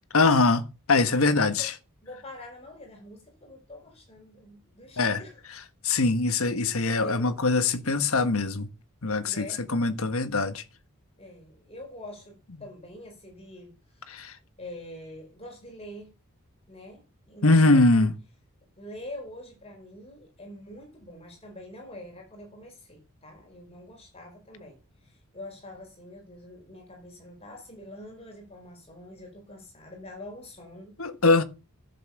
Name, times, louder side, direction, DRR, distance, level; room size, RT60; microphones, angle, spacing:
voice 1, 0.1-1.7 5.0-5.2 5.8-8.7 9.0-10.6 14.1-14.3 17.4-18.1 31.0-31.4, left 3 dB, 70° left, 1.4 m, -22 dB
voice 2, 1.3-1.7 2.0-5.4 7.0-7.4 9.2-9.6 11.2-13.7 14.6-16.1 16.7-18.1 18.8-31.0, left 1 dB, 25° left, 5.1 m, -45 dB
11.0 x 7.5 x 7.2 m
head